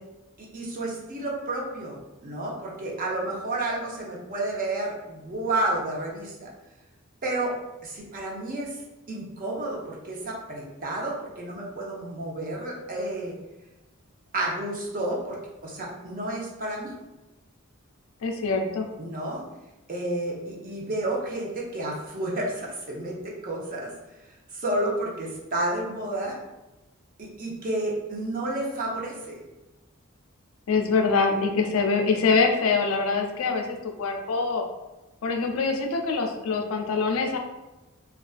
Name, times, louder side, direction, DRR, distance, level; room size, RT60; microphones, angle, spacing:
voice 1, 0.4-6.5 7.2-7.6 7.8-8.8 9.1-13.3 14.3-16.9 19.0-19.4 19.9-23.9 24.5-26.4 27.2-29.3, right 1 dB, 40° right, -2 dB, 0.6 m, -31 dB
voice 2, 18.2-18.9 30.7-34.6 35.2-37.4, left 4 dB, 70° left, 3 dB, 0.4 m, -24 dB
2.4 x 2.2 x 2.4 m, 1.0 s
head